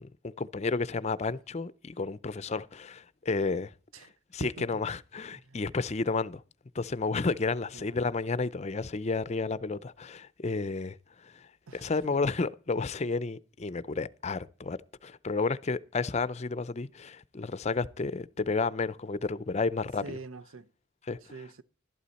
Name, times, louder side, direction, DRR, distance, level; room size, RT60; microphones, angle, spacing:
voice 1, 0.0-3.7 4.0-6.4 6.7-20.2 21.1-21.2, left 3 dB, 30° left, 0.5 m, -32 dB
voice 2, 11.7-12.2 20.0-20.7 21.2-21.6, right 3 dB, 85° right, 0.8 m, -45 dB
12.5 x 11.5 x 4.1 m
head